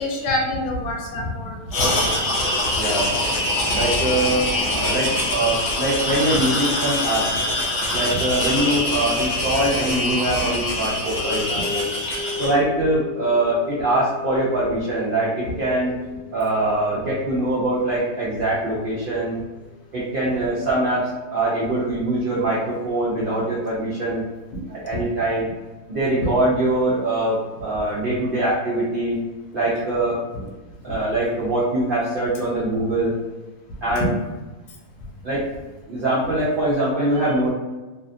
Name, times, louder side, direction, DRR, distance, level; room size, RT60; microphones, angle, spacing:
voice 1, 0.0-2.2 24.9-25.0 26.2-26.3 30.3-30.4, left 1 dB, 80° left, -1 dB, 1.1 m, -27 dB
sound 1, 1.7-12.5, left 1 dB, 60° left, 0.7 m, -24 dB
voice 2, 2.7-3.1 3.7-7.4 7.9-11.9 12.4-15.9 16.3-19.4 19.9-24.2 24.7-25.5 25.9-29.2 29.5-30.2 30.8-33.2 33.8-34.1 35.2-35.4 35.9-37.5, right 1 dB, 85° right, -7 dB, 0.4 m, -23 dB
sound 2, 11.2-20.1, left 5 dB, 40° right, 0.9 m, -37 dB
2.8 x 2.3 x 2.5 m, 1.2 s
omnidirectional pair, 1.6 m